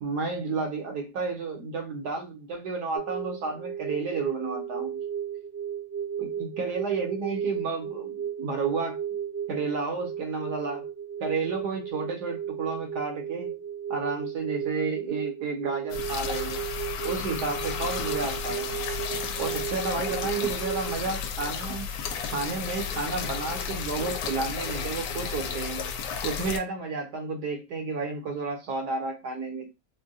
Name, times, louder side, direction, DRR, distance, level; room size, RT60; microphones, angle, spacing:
voice 1, 0.0-5.0 6.2-9.0 9.5-10.9 11.2-13.6 13.9-16.6 17.0-18.7 19.4-21.9 22.3-25.9 26.2-29.7, right 4 dB, 65° right, 1.2 m, -31 dB
sound 1, 3.0-21.0, right 8 dB, 80° right, 1.3 m, -34 dB
sound 2, 15.9-26.6, left 6 dB, 75° left, 1.1 m, -33 dB
3.7 x 2.2 x 2.6 m
omnidirectional pair, 2.0 m